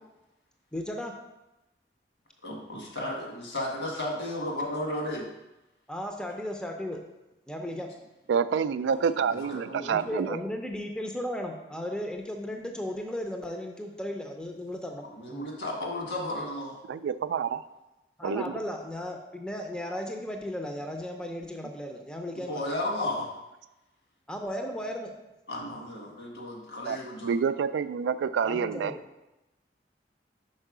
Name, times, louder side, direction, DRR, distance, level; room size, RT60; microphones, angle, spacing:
voice 1, 0.7-1.1 5.9-7.0 7.5-7.9 9.9-15.5 18.2-22.6 23.1-23.2 24.3-25.1 28.4-28.9, left 1 dB, 5° left, 2 dB, 0.5 m, -35 dB
voice 2, 2.4-5.3 9.3-9.9 15.1-16.8 22.5-23.3 25.5-27.4, left 1 dB, 75° left, -1 dB, 1.6 m, -34 dB
voice 3, 8.3-10.4 16.9-17.6 18.2-18.5 26.9-28.9, right 6 dB, 90° right, 13 dB, 0.3 m, -28 dB
5.5 x 4.5 x 4.9 m, 0.97 s
head